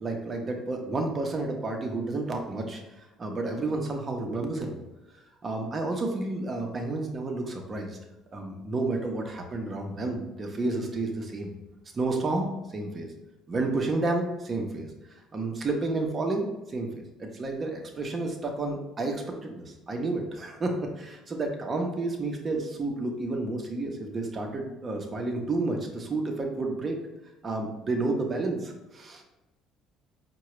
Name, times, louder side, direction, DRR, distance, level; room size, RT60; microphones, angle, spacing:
voice 1, 0.0-4.7 5.4-8.0 8.3-11.5 11.9-13.1 13.5-27.0 27.4-29.2, right 2 dB, 35° right, 2 dB, 0.8 m, -31 dB
4.6 x 2.2 x 3.1 m, 1.0 s
supercardioid pair, 80°, 0 cm